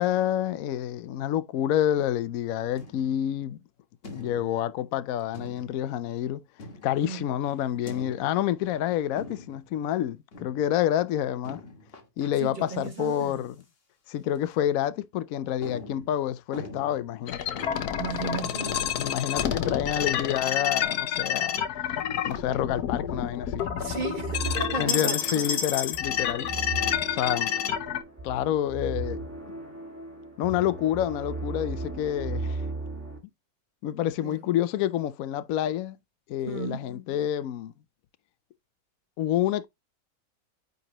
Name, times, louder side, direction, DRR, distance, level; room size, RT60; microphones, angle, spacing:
voice 1, 0.0-3.6 4.1-6.4 6.8-11.6 12.2-13.5 14.1-18.5 18.9-21.6 22.2-23.7 24.8-26.5 27.1-27.5 28.2-29.2 30.4-32.6 33.8-36.0 36.3-37.7 39.2-39.7, left 11 dB, 70° left, 1.0 m, -28 dB
sound 1, 2.8-3.3 4.0-4.7 5.3-5.9 6.6-7.2 7.8-8.5 9.2-9.7 10.3-10.7 11.4-12.3 12.7-13.3 13.6-13.7 14.3-14.5 15.0-15.1 15.6-17.2 17.6-18.0 18.3-18.4 18.6-19.9, left 2 dB, 40° left, 1.6 m, -43 dB
voice 2, 12.4-13.5 18.0-18.8 23.8-25.4 26.5-26.7 34.2-34.5 36.5-36.9, right 7 dB, 35° right, 1.3 m, -35 dB
sound 2, 17.3-28.0, left 9 dB, 90° left, 1.4 m, -29 dB
sound 3, 23.7-33.2, right 2 dB, 10° right, 1.8 m, -36 dB
9.4 x 4.0 x 2.9 m
omnidirectional pair, 1.6 m